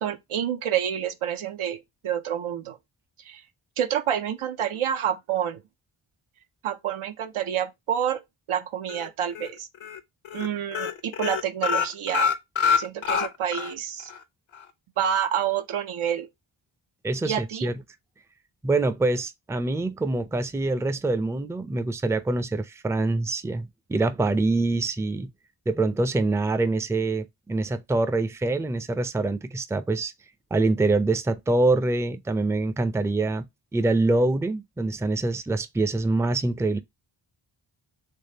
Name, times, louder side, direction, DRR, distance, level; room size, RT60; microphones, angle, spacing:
voice 1, 0.0-2.8 3.2-3.4 3.8-5.6 6.6-8.2 8.5-9.7 10.3-12.3 12.8-14.1 15.0-16.3 17.2-17.7, right 9 dB, 90° right, 0.6 m, -28 dB
sound 1, 8.9-9.5 9.8-10.0 10.3-10.5 10.7-13.7 14.1-14.2 14.5-14.6, left 6 dB, 75° left, 0.8 m, -25 dB
voice 2, 17.0-17.7 18.6-25.3 25.7-30.1 30.5-33.5 33.7-36.8, right 2 dB, 5° right, 0.3 m, -25 dB
3.6 x 3.2 x 2.7 m
cardioid pair, 60°, 48 cm